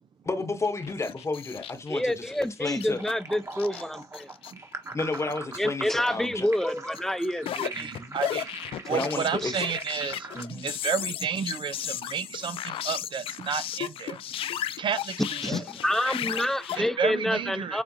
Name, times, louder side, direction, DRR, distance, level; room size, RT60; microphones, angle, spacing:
voice 1, 0.2-2.2 2.6-3.0 4.9-6.5 7.7-8.2 8.9-9.6 10.3-10.7, left 3 dB, 30° left, 1.1 m, -32 dB
sound 1, 0.6-2.5 2.8-4.7 5.0-5.6 5.9-6.1 6.9-16.8, left 11 dB, 70° left, 0.4 m, -35 dB
voice 2, 1.9-4.3 5.6-7.7 9.4-9.5 15.4-17.8, left 1 dB, 5° left, 0.8 m, -28 dB
sound 2, 2.9-10.4, right 2 dB, 30° right, 1.4 m, -41 dB
voice 3, 7.6-8.5 8.8-14.2 14.8-15.6 16.8-17.8, right 6 dB, 55° right, 0.6 m, -31 dB
7.2 x 2.4 x 2.8 m
supercardioid pair, 55°, 10 cm